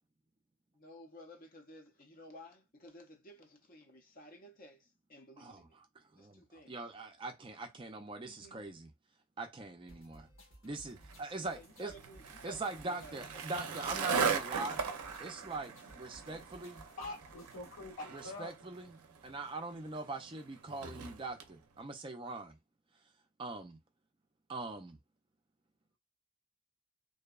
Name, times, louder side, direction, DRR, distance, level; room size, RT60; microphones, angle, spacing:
voice 1, 0.7-5.8 6.2-6.8 8.2-8.7 11.4-13.4, equal, 40° left, 0.5 m, -54 dB
voice 2, 6.1-8.9 9.4-10.3 10.6-11.9 12.4-14.8 15.2-16.8 18.1-22.6 23.4-23.8 24.5-25.0, right 3 dB, 20° right, 0.4 m, -42 dB
sound 1, 9.9-17.9, equal, 60° left, 1.1 m, -59 dB
Skateboard, 11.0-21.5, right 6 dB, 85° right, 0.4 m, -39 dB
voice 3, 17.0-18.5, left 2 dB, 85° left, 1.2 m, -44 dB
2.6 x 2.1 x 2.3 m
head